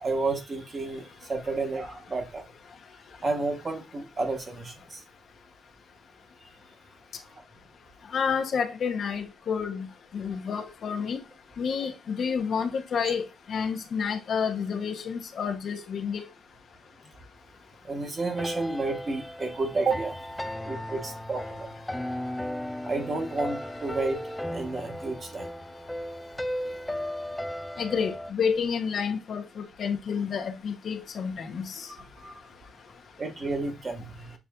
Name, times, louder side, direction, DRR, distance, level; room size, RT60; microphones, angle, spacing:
voice 1, 0.0-2.5 3.2-5.0 13.0-13.1 17.8-20.3 20.7-21.7 22.8-24.2 24.5-25.5 32.2-32.3 33.2-34.3, right 3 dB, 35° right, 1.1 m, -31 dB
voice 2, 8.1-9.9 10.1-11.2 11.6-16.2 27.8-31.9, left 6 dB, 55° left, 0.6 m, -29 dB
sound 1, 18.2-28.3, left 1 dB, 5° left, 0.3 m, -36 dB
6.9 x 2.5 x 2.2 m
cardioid pair, 90°, 0 cm